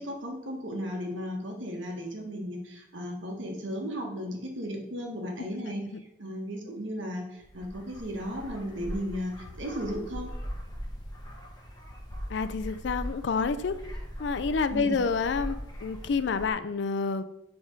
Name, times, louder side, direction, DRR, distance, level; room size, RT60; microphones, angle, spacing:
voice 1, 0.0-5.8 6.2-10.3 14.7-15.0, equal, 75° right, 1 dB, 1.4 m, -35 dB
sound 1, 7.4-16.5, equal, 20° left, 1.1 m, -40 dB
voice 2, 12.3-13.8 14.2-17.2, left 5 dB, 65° left, 12 dB, 0.4 m, -28 dB
6.3 x 3.5 x 5.2 m, 0.85 s
head